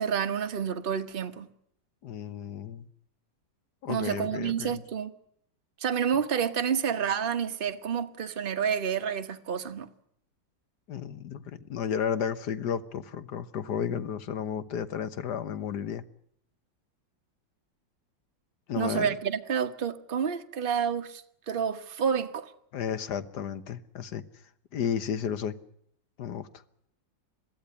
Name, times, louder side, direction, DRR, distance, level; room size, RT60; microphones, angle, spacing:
voice 1, 0.0-1.5 3.9-5.1 5.8-9.9 18.8-22.5, right 7 dB, 35° right, 1.3 m, -29 dB
voice 2, 2.0-2.8 3.8-4.8 10.9-16.0 18.7-19.1 22.7-24.2 24.7-25.6 26.2-26.5, left 8 dB, 65° left, 1.7 m, -33 dB
22.5 x 15.5 x 9.9 m
omnidirectional pair, 2.0 m